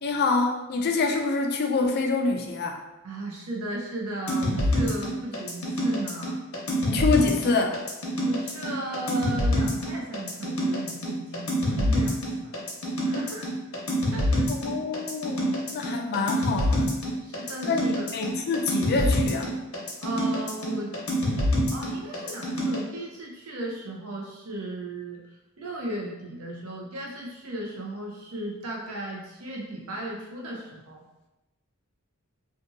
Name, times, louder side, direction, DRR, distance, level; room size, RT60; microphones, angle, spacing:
voice 1, 0.0-2.8 6.8-7.8 14.5-17.0 17.6-19.5, left 4 dB, 50° left, 3 dB, 0.4 m, -26 dB
voice 2, 3.0-6.4 8.2-12.5 13.0-13.5 14.1-14.4 17.2-18.1 20.0-20.9 21.7-31.0, right 1 dB, 80° right, -2 dB, 0.7 m, -35 dB
sound 1, 4.3-22.8, equal, 70° left, 0.7 m, -26 dB
2.6 x 2.5 x 2.5 m, 1.0 s
head